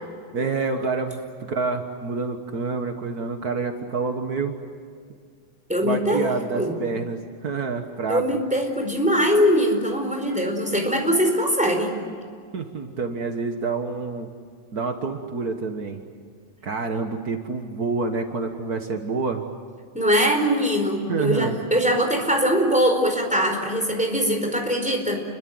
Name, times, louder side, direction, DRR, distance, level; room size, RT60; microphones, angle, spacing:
voice 1, 0.3-4.6 5.8-8.2 12.5-14.3 14.7-16.0 16.6-19.4 21.1-21.6, right 4 dB, 65° right, 5 dB, 0.9 m, -27 dB
voice 2, 5.7-6.7 8.1-11.9 19.9-25.2, equal, ahead, 3 dB, 4.3 m, -22 dB
30.0 x 23.0 x 7.9 m, 2.1 s
omnidirectional pair, 4.0 m